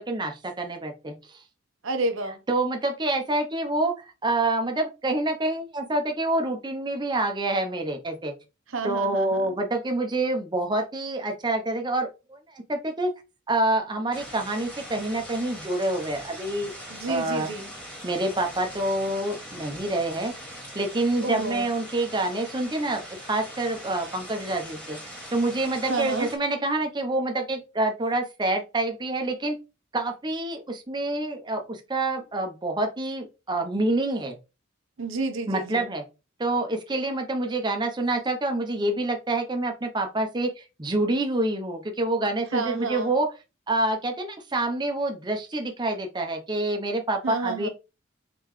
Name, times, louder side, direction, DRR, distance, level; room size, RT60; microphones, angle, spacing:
voice 1, 0.0-1.4 2.5-8.3 8.8-13.1 13.5-16.7 17.1-17.5 18.0-20.3 20.7-23.0 23.3-25.0 25.3-29.6 29.9-34.4 35.5-36.0 36.4-43.3 43.7-47.7, right 2 dB, 20° right, 0.7 m, -27 dB
voice 2, 1.8-2.4 8.7-9.5 16.9-17.7 21.2-21.7 25.9-26.3 35.0-35.9 42.5-43.2 47.2-47.7, right 3 dB, 75° right, 0.9 m, -30 dB
sound 1, 14.1-26.4, equal, 5° left, 1.7 m, -41 dB
3.8 x 3.8 x 3.1 m
head